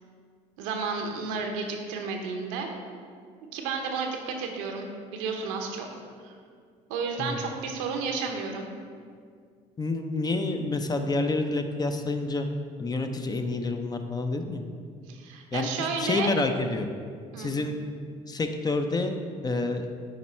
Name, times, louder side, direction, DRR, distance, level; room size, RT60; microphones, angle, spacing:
voice 1, 0.6-2.7 3.5-5.9 6.2-6.3 6.9-8.7 15.1-16.3 17.3-17.5, right 5 dB, 85° right, 3 dB, 0.8 m, -32 dB
voice 2, 9.8-12.5 12.8-14.6 15.5-16.9 17.4-17.8 18.3-19.2 19.4-19.9, left 3 dB, 25° left, 6 dB, 0.6 m, -28 dB
9.1 x 3.1 x 4.3 m, 2.1 s
supercardioid pair, 70°, 16 cm